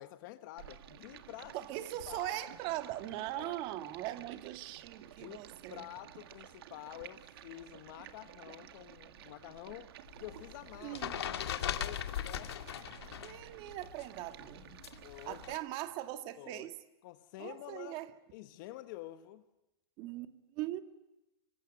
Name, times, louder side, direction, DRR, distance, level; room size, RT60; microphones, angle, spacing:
voice 1, 0.0-1.6 2.1-2.5 3.3-3.6 5.2-5.4 5.7-9.9 10.2-12.5 15.0-15.4 16.4-16.7 17.0-18.0 18.3-19.4, left 15 dB, 50° left, 1.2 m, -48 dB
Stream, 0.6-15.6, right 11 dB, 65° right, 2.0 m, -53 dB
voice 2, 1.5-5.9 10.8-11.1 13.2-14.8 15.3-16.8 17.4-18.1 20.0-20.8, right 15 dB, 40° right, 1.9 m, -40 dB
sound 1, 10.1-13.4 13.7-15.6, left 10 dB, 80° left, 2.1 m, -39 dB
25.0 x 24.5 x 9.0 m
hypercardioid pair, 130°, 13 cm